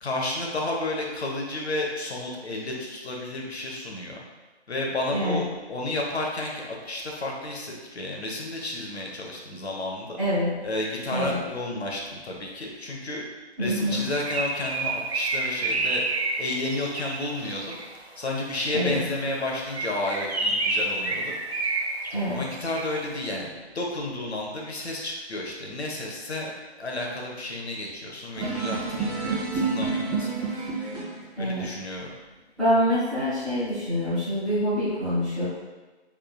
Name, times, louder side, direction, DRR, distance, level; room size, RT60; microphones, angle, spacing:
voice 1, 0.0-4.2 4.7-10.2 10.6-13.2 13.6-16.0 16.4-17.8 18.2-21.4 22.3-26.5 26.8-30.3 30.6-31.1 31.4-32.1, left 2 dB, 70° left, -1 dB, 1.0 m, -31 dB
voice 2, 5.1-5.4 10.2-10.5 11.1-11.4 13.6-14.1 18.7-18.9 22.1-22.4 31.4-31.6 32.6-35.4, equal, ahead, -18 dB, 0.8 m, -25 dB
Bird, 13.9-18.0 19.6-23.1, right 2 dB, 70° right, 0.7 m, -29 dB
sound 1, 28.3-31.2, right 4 dB, 20° left, 1.1 m, -28 dB
4.5 x 3.6 x 2.2 m, 1.2 s
figure-of-eight pair, 155°, 33 cm